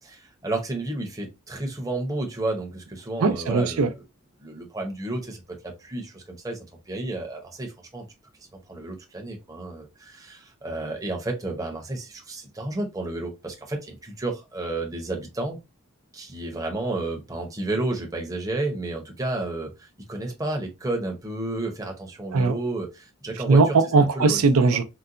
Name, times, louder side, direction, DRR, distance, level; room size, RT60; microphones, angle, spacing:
voice 1, 0.0-3.9 4.4-6.6 6.9-8.1 8.7-15.6 16.1-23.7 24.2-24.4, right 2 dB, 15° right, 0.7 m, -31 dB
voice 2, 3.2-3.9 22.3-22.6 23.5-24.8, right 4 dB, 90° right, 0.5 m, -19 dB
3.9 x 2.2 x 2.5 m
head